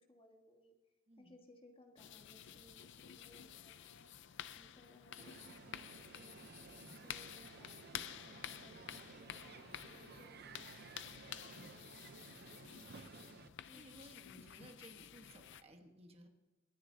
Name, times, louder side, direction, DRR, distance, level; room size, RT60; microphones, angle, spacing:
voice 1, 0.1-0.7 1.2-4.0 4.5-6.4 6.9-10.4 11.0-11.8 13.7-13.9, left 1 dB, 25° left, 3 dB, 1.5 m, -63 dB
voice 2, 1.1-1.4 13.3-13.4 13.7-16.3, right 1 dB, 30° right, 4 dB, 1.2 m, -60 dB
sound 1, 2.0-15.6, left 10 dB, 60° left, 0.5 m, -51 dB
Crowd, 5.2-13.5, right 4 dB, 50° right, 0.6 m, -56 dB
24.0 x 10.0 x 2.7 m, 1.2 s
head